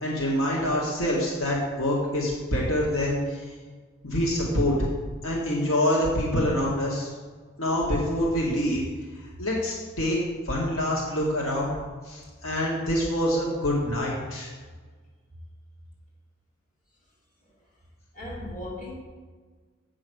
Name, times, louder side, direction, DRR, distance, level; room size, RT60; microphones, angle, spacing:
voice 1, 0.0-3.5 4.0-4.9 5.2-7.1 7.6-8.8 9.4-10.2 10.5-11.7 12.0-14.5, left 1 dB, 85° left, -3 dB, 1.9 m, -26 dB
voice 2, 18.1-18.9, left 1 dB, 40° left, -5 dB, 3.2 m, -37 dB
8.0 x 6.3 x 6.3 m, 1.5 s
head